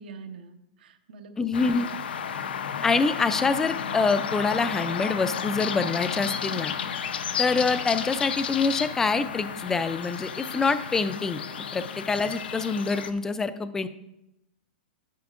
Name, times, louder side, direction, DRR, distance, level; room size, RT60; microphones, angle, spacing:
voice 1, 0.0-2.0, right 5 dB, 75° right, 7 dB, 0.9 m, -44 dB
voice 2, 1.4-1.9 2.8-6.7 7.4-11.4 11.7-13.9, left 4 dB, 10° left, 12 dB, 0.3 m, -26 dB
sound 1, 1.5-13.1, left 7 dB, 90° left, 0.7 m, -32 dB
10.5 x 9.5 x 2.5 m, 0.90 s
hypercardioid pair, 150°, 5 cm